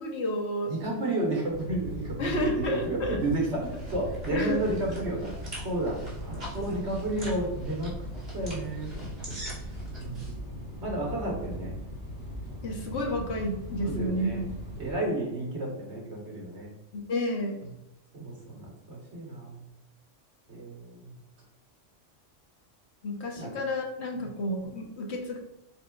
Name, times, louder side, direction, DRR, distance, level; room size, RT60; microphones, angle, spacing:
voice 1, 0.0-1.0 2.2-3.2 4.3-4.6 12.6-14.5 16.9-17.6 23.0-25.4, left 1 dB, 65° left, 1 dB, 1.0 m, -31 dB
voice 2, 0.7-5.4 5.6-7.9 8.3-9.3 10.0-10.4 10.8-11.7 13.8-14.4 14.8-16.7 18.1-19.6 20.5-21.2 23.4-23.5 24.1-24.2, right 2 dB, 65° right, -2 dB, 1.5 m, -32 dB
sound 1, 1.5-15.0, equal, 20° right, 0.9 m, -39 dB
sound 2, 3.2-10.3, right 1 dB, 40° right, 1.6 m, -44 dB
4.5 x 4.2 x 2.2 m, 0.91 s
omnidirectional pair, 1.3 m